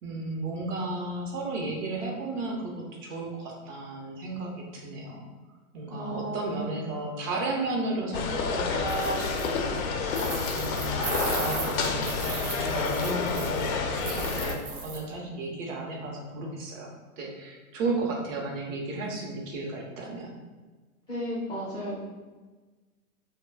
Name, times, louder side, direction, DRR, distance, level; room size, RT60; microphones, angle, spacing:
voice 1, 0.0-5.3 5.7-10.2 10.5-20.3, right 2 dB, 60° right, 0 dB, 0.8 m, -34 dB
voice 2, 5.9-6.7 21.1-22.0, right 1 dB, 10° left, -9 dB, 0.5 m, -34 dB
sound 1, 8.1-14.6, left 4 dB, 70° left, 0.5 m, -29 dB
sound 2, 8.9-9.6 10.1-13.7 14.0-15.0, right 4 dB, 40° right, 0.5 m, -36 dB
2.2 x 2.2 x 3.3 m, 1.3 s
hypercardioid pair, 120°, 44 cm